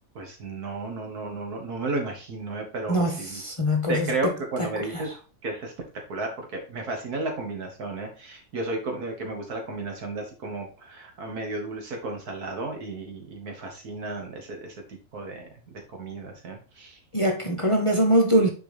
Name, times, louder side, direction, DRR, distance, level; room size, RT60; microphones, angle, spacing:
voice 1, 0.2-3.4 3.9-5.1 5.4-5.7 6.1-15.5 15.9-17.0, right 2 dB, 90° right, 2.2 m, -33 dB
voice 2, 2.9-4.1 4.9-5.0 17.1-18.5, equal, 25° left, 0.7 m, -22 dB
6.7 x 4.7 x 3.3 m
omnidirectional pair, 1.6 m